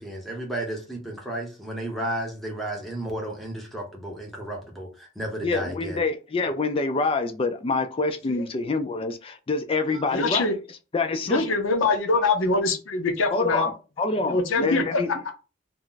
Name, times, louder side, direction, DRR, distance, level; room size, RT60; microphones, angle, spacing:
voice 1, 0.0-6.0 9.9-10.2 12.1-12.2, right 1 dB, ahead, 0.7 m, -33 dB
voice 2, 5.4-11.5 13.3-15.1, left 3 dB, 30° left, 0.3 m, -26 dB
voice 3, 10.1-10.5 11.3-13.7 14.3-14.8, left 3 dB, 80° left, 0.6 m, -23 dB
2.3 x 2.1 x 3.8 m
head